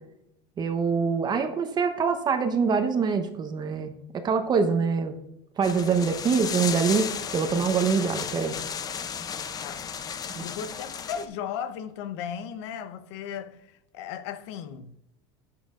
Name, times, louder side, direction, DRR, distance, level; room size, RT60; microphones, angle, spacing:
voice 1, 0.6-5.1 5.6-8.6, right 5 dB, 30° right, 0.9 m, -25 dB
sound 1, 5.6-11.3, left 7 dB, 25° left, 0.6 m, -34 dB
voice 2, 10.4-14.9, left 8 dB, 75° left, 0.8 m, -36 dB
11.5 x 8.6 x 2.5 m
supercardioid pair, 130°, 14 cm